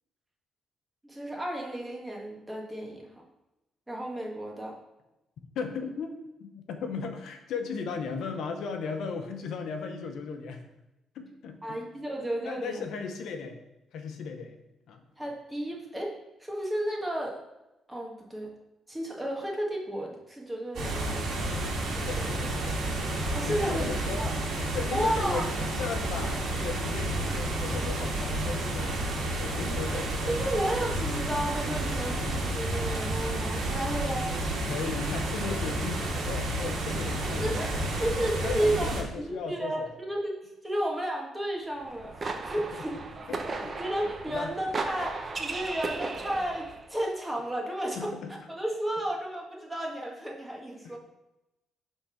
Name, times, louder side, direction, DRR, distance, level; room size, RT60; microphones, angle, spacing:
voice 1, 1.0-3.1 3.9-4.7 11.6-12.8 15.2-17.4 17.9-18.5 18.9-21.3 21.9-22.3 23.3-23.9 24.2-24.3 24.9-25.5 30.3-34.4 37.3-38.9 39.2-43.0 43.4-43.5 43.8-48.1 48.5-51.0, right 1 dB, 15° right, -1 dB, 1.6 m, -33 dB
voice 2, 5.5-10.7 11.1-11.8 12.4-13.6 13.9-14.6 14.9-15.0 22.0-22.8 23.1-24.2 24.7-30.4 34.6-37.7 38.0-38.1 38.4-39.9 42.7-42.8 43.3-43.7 44.3-44.5 48.0-48.3 50.8-51.0, left 5 dB, 75° left, 5 dB, 0.8 m, -36 dB
sound 1, 20.7-39.0, right 1 dB, 65° right, 2.0 m, -31 dB
sound 2, 41.8-46.9, right 3 dB, 35° right, 0.8 m, -36 dB
5.8 x 3.7 x 5.7 m, 0.96 s
cardioid pair, 90°, 0 cm